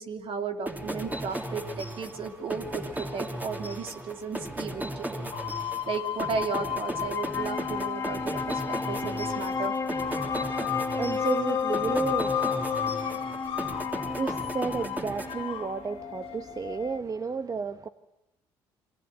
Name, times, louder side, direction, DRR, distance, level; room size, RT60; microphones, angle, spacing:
voice 1, 0.0-5.3 5.9-9.7, right 5 dB, 60° right, 5 dB, 2.9 m, -34 dB
sound 1, 0.7-16.0, right 1 dB, 15° right, 3.5 m, -37 dB
sound 2, 1.3-1.5 2.8-2.9 3.9-4.0 5.2-17.0, left 10 dB, 65° left, 1.7 m, -34 dB
Wind instrument woodwind instrument, 7.1-16.6, left 4 dB, 30° left, 2.9 m, -33 dB
voice 2, 10.1-17.9, right 5 dB, 35° right, 10 dB, 1.2 m, -34 dB
28.0 x 23.5 x 7.8 m, 0.86 s
supercardioid pair, 60°, 11 cm